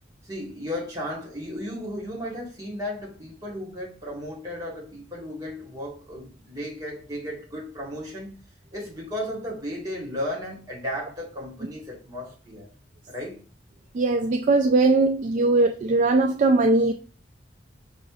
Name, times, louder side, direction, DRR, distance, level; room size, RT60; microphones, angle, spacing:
voice 1, 0.2-8.3 8.7-12.7 13.1-13.4, left 1 dB, 20° right, 1.4 m, -34 dB
voice 2, 13.9-16.9, right 3 dB, 45° right, 0.3 m, -20 dB
6.2 x 2.5 x 2.4 m
head